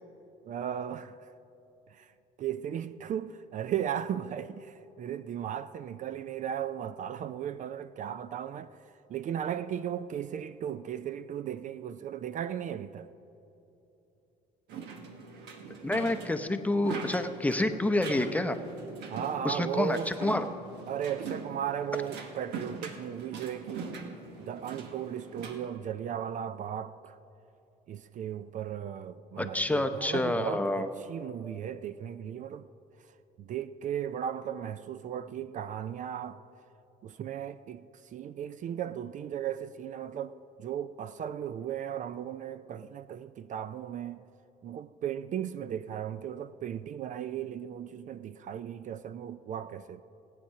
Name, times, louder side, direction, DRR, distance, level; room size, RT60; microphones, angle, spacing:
voice 1, 0.5-1.3 1.9-2.1 2.4-8.8 9.1-13.1 19.1-20.1 20.9-23.9 24.4-27.2 27.9-32.7 33.4-36.4 37.0-44.2 44.6-50.0, right 9 dB, 50° right, 0.4 m, -36 dB
sound 1, 14.7-25.6, right 5 dB, 80° right, 1.4 m, -42 dB
voice 2, 15.8-18.6 19.4-20.5 29.4-30.9, left 1 dB, 10° left, 0.7 m, -28 dB
17.5 x 8.7 x 5.7 m
cardioid pair, 110°, 17 cm